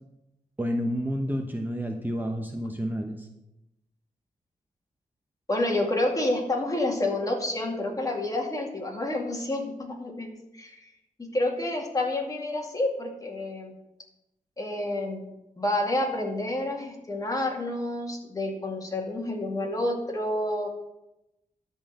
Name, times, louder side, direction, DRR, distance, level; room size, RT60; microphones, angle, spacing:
voice 1, 0.6-3.3, equal, 15° right, 3 dB, 0.9 m, -30 dB
voice 2, 5.5-10.9 11.2-13.7 14.6-15.3 15.6-20.7, left 1 dB, 25° left, 0 dB, 2.3 m, -29 dB
12.5 x 4.4 x 7.9 m, 0.92 s
wide cardioid pair, 95°, 14 cm